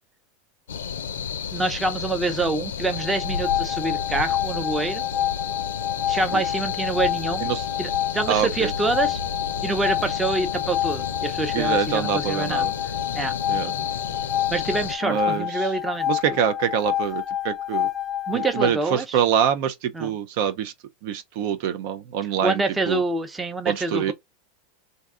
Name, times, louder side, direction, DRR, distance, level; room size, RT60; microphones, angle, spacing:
sound 1, 0.7-15.0, left 7 dB, 90° left, 0.4 m, -32 dB
voice 1, 1.5-5.0 6.1-7.5 7.8-9.2 9.6-12.7 13.1-13.3 14.5-16.1 18.3-19.2 19.9-20.1 22.4-24.1, right 3 dB, 15° right, 0.7 m, -26 dB
sound 2, 2.9-18.7, left 11 dB, 25° left, 0.3 m, -28 dB
voice 2, 8.3-8.7 11.5-12.7 13.5-13.7 15.0-15.7 16.1-17.9 18.3-20.7 21.0-23.0 23.7-24.1, right 9 dB, 65° right, 0.4 m, -25 dB
2.6 x 2.3 x 3.6 m
hypercardioid pair, 110°, 0 cm